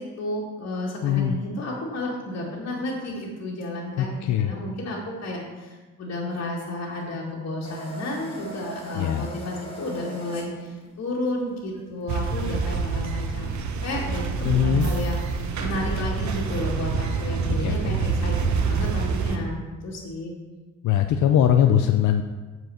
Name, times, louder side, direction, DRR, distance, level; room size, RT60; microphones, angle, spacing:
voice 1, 0.0-13.5 13.8-18.4 18.6-20.3, left 1 dB, 55° left, -5 dB, 2.0 m, -32 dB
voice 2, 1.0-1.4 4.0-4.5 8.9-9.3 14.4-14.9 17.6-17.9 20.8-22.2, left 9 dB, 70° left, 6 dB, 0.6 m, -21 dB
sound 1, 7.6-13.7, right 2 dB, 20° left, 2.3 m, -42 dB
sound 2, 12.1-19.4, right 5 dB, 70° right, 1.0 m, -26 dB
8.0 x 4.7 x 6.3 m, 1.3 s
cardioid pair, 90°, 30 cm